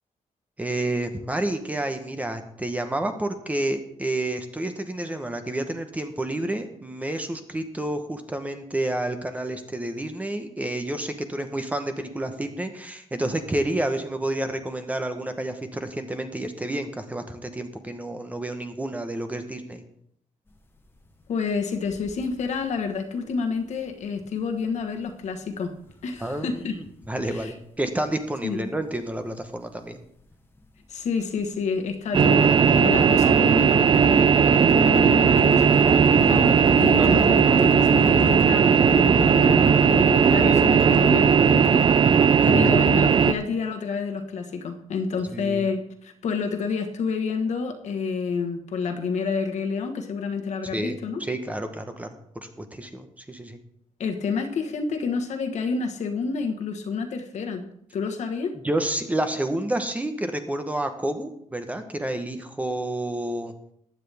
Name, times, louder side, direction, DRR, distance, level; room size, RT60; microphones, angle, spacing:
voice 1, 0.6-19.8 26.2-30.0 37.0-37.3 40.4-40.7 42.4-42.7 45.3-45.7 50.7-52.1 52.6-53.6 58.6-63.5, right 1 dB, 10° right, 7 dB, 0.9 m, -29 dB
sound 1, 20.5-39.1, left 2 dB, 15° left, 1.1 m, -42 dB
voice 2, 21.3-25.7 26.0-26.8 27.2-27.5 28.4-28.6 30.9-41.9 42.4-51.2 54.0-57.7 57.9-58.5, left 5 dB, 65° left, 5 dB, 1.3 m, -29 dB
sound 2, 32.1-43.3, right 7 dB, 40° right, 0.4 m, -17 dB
15.0 x 9.9 x 3.5 m, 0.72 s
wide cardioid pair, 150°, 13 cm